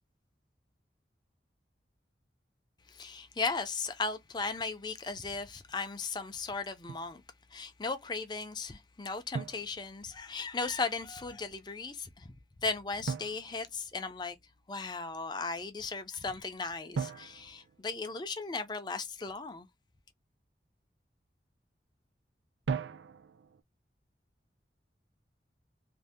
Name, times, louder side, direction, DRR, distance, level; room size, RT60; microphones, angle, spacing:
voice 1, 2.9-7.2 7.5-12.3 12.6-14.4 14.7-19.7, left 4 dB, 25° left, 0.4 m, -36 dB
Drum, 6.9-7.2 9.3-10.5 13.1-14.5 16.9-18.7 22.7-23.6, right 5 dB, 85° right, 0.4 m, -39 dB
2.6 x 2.1 x 3.4 m
head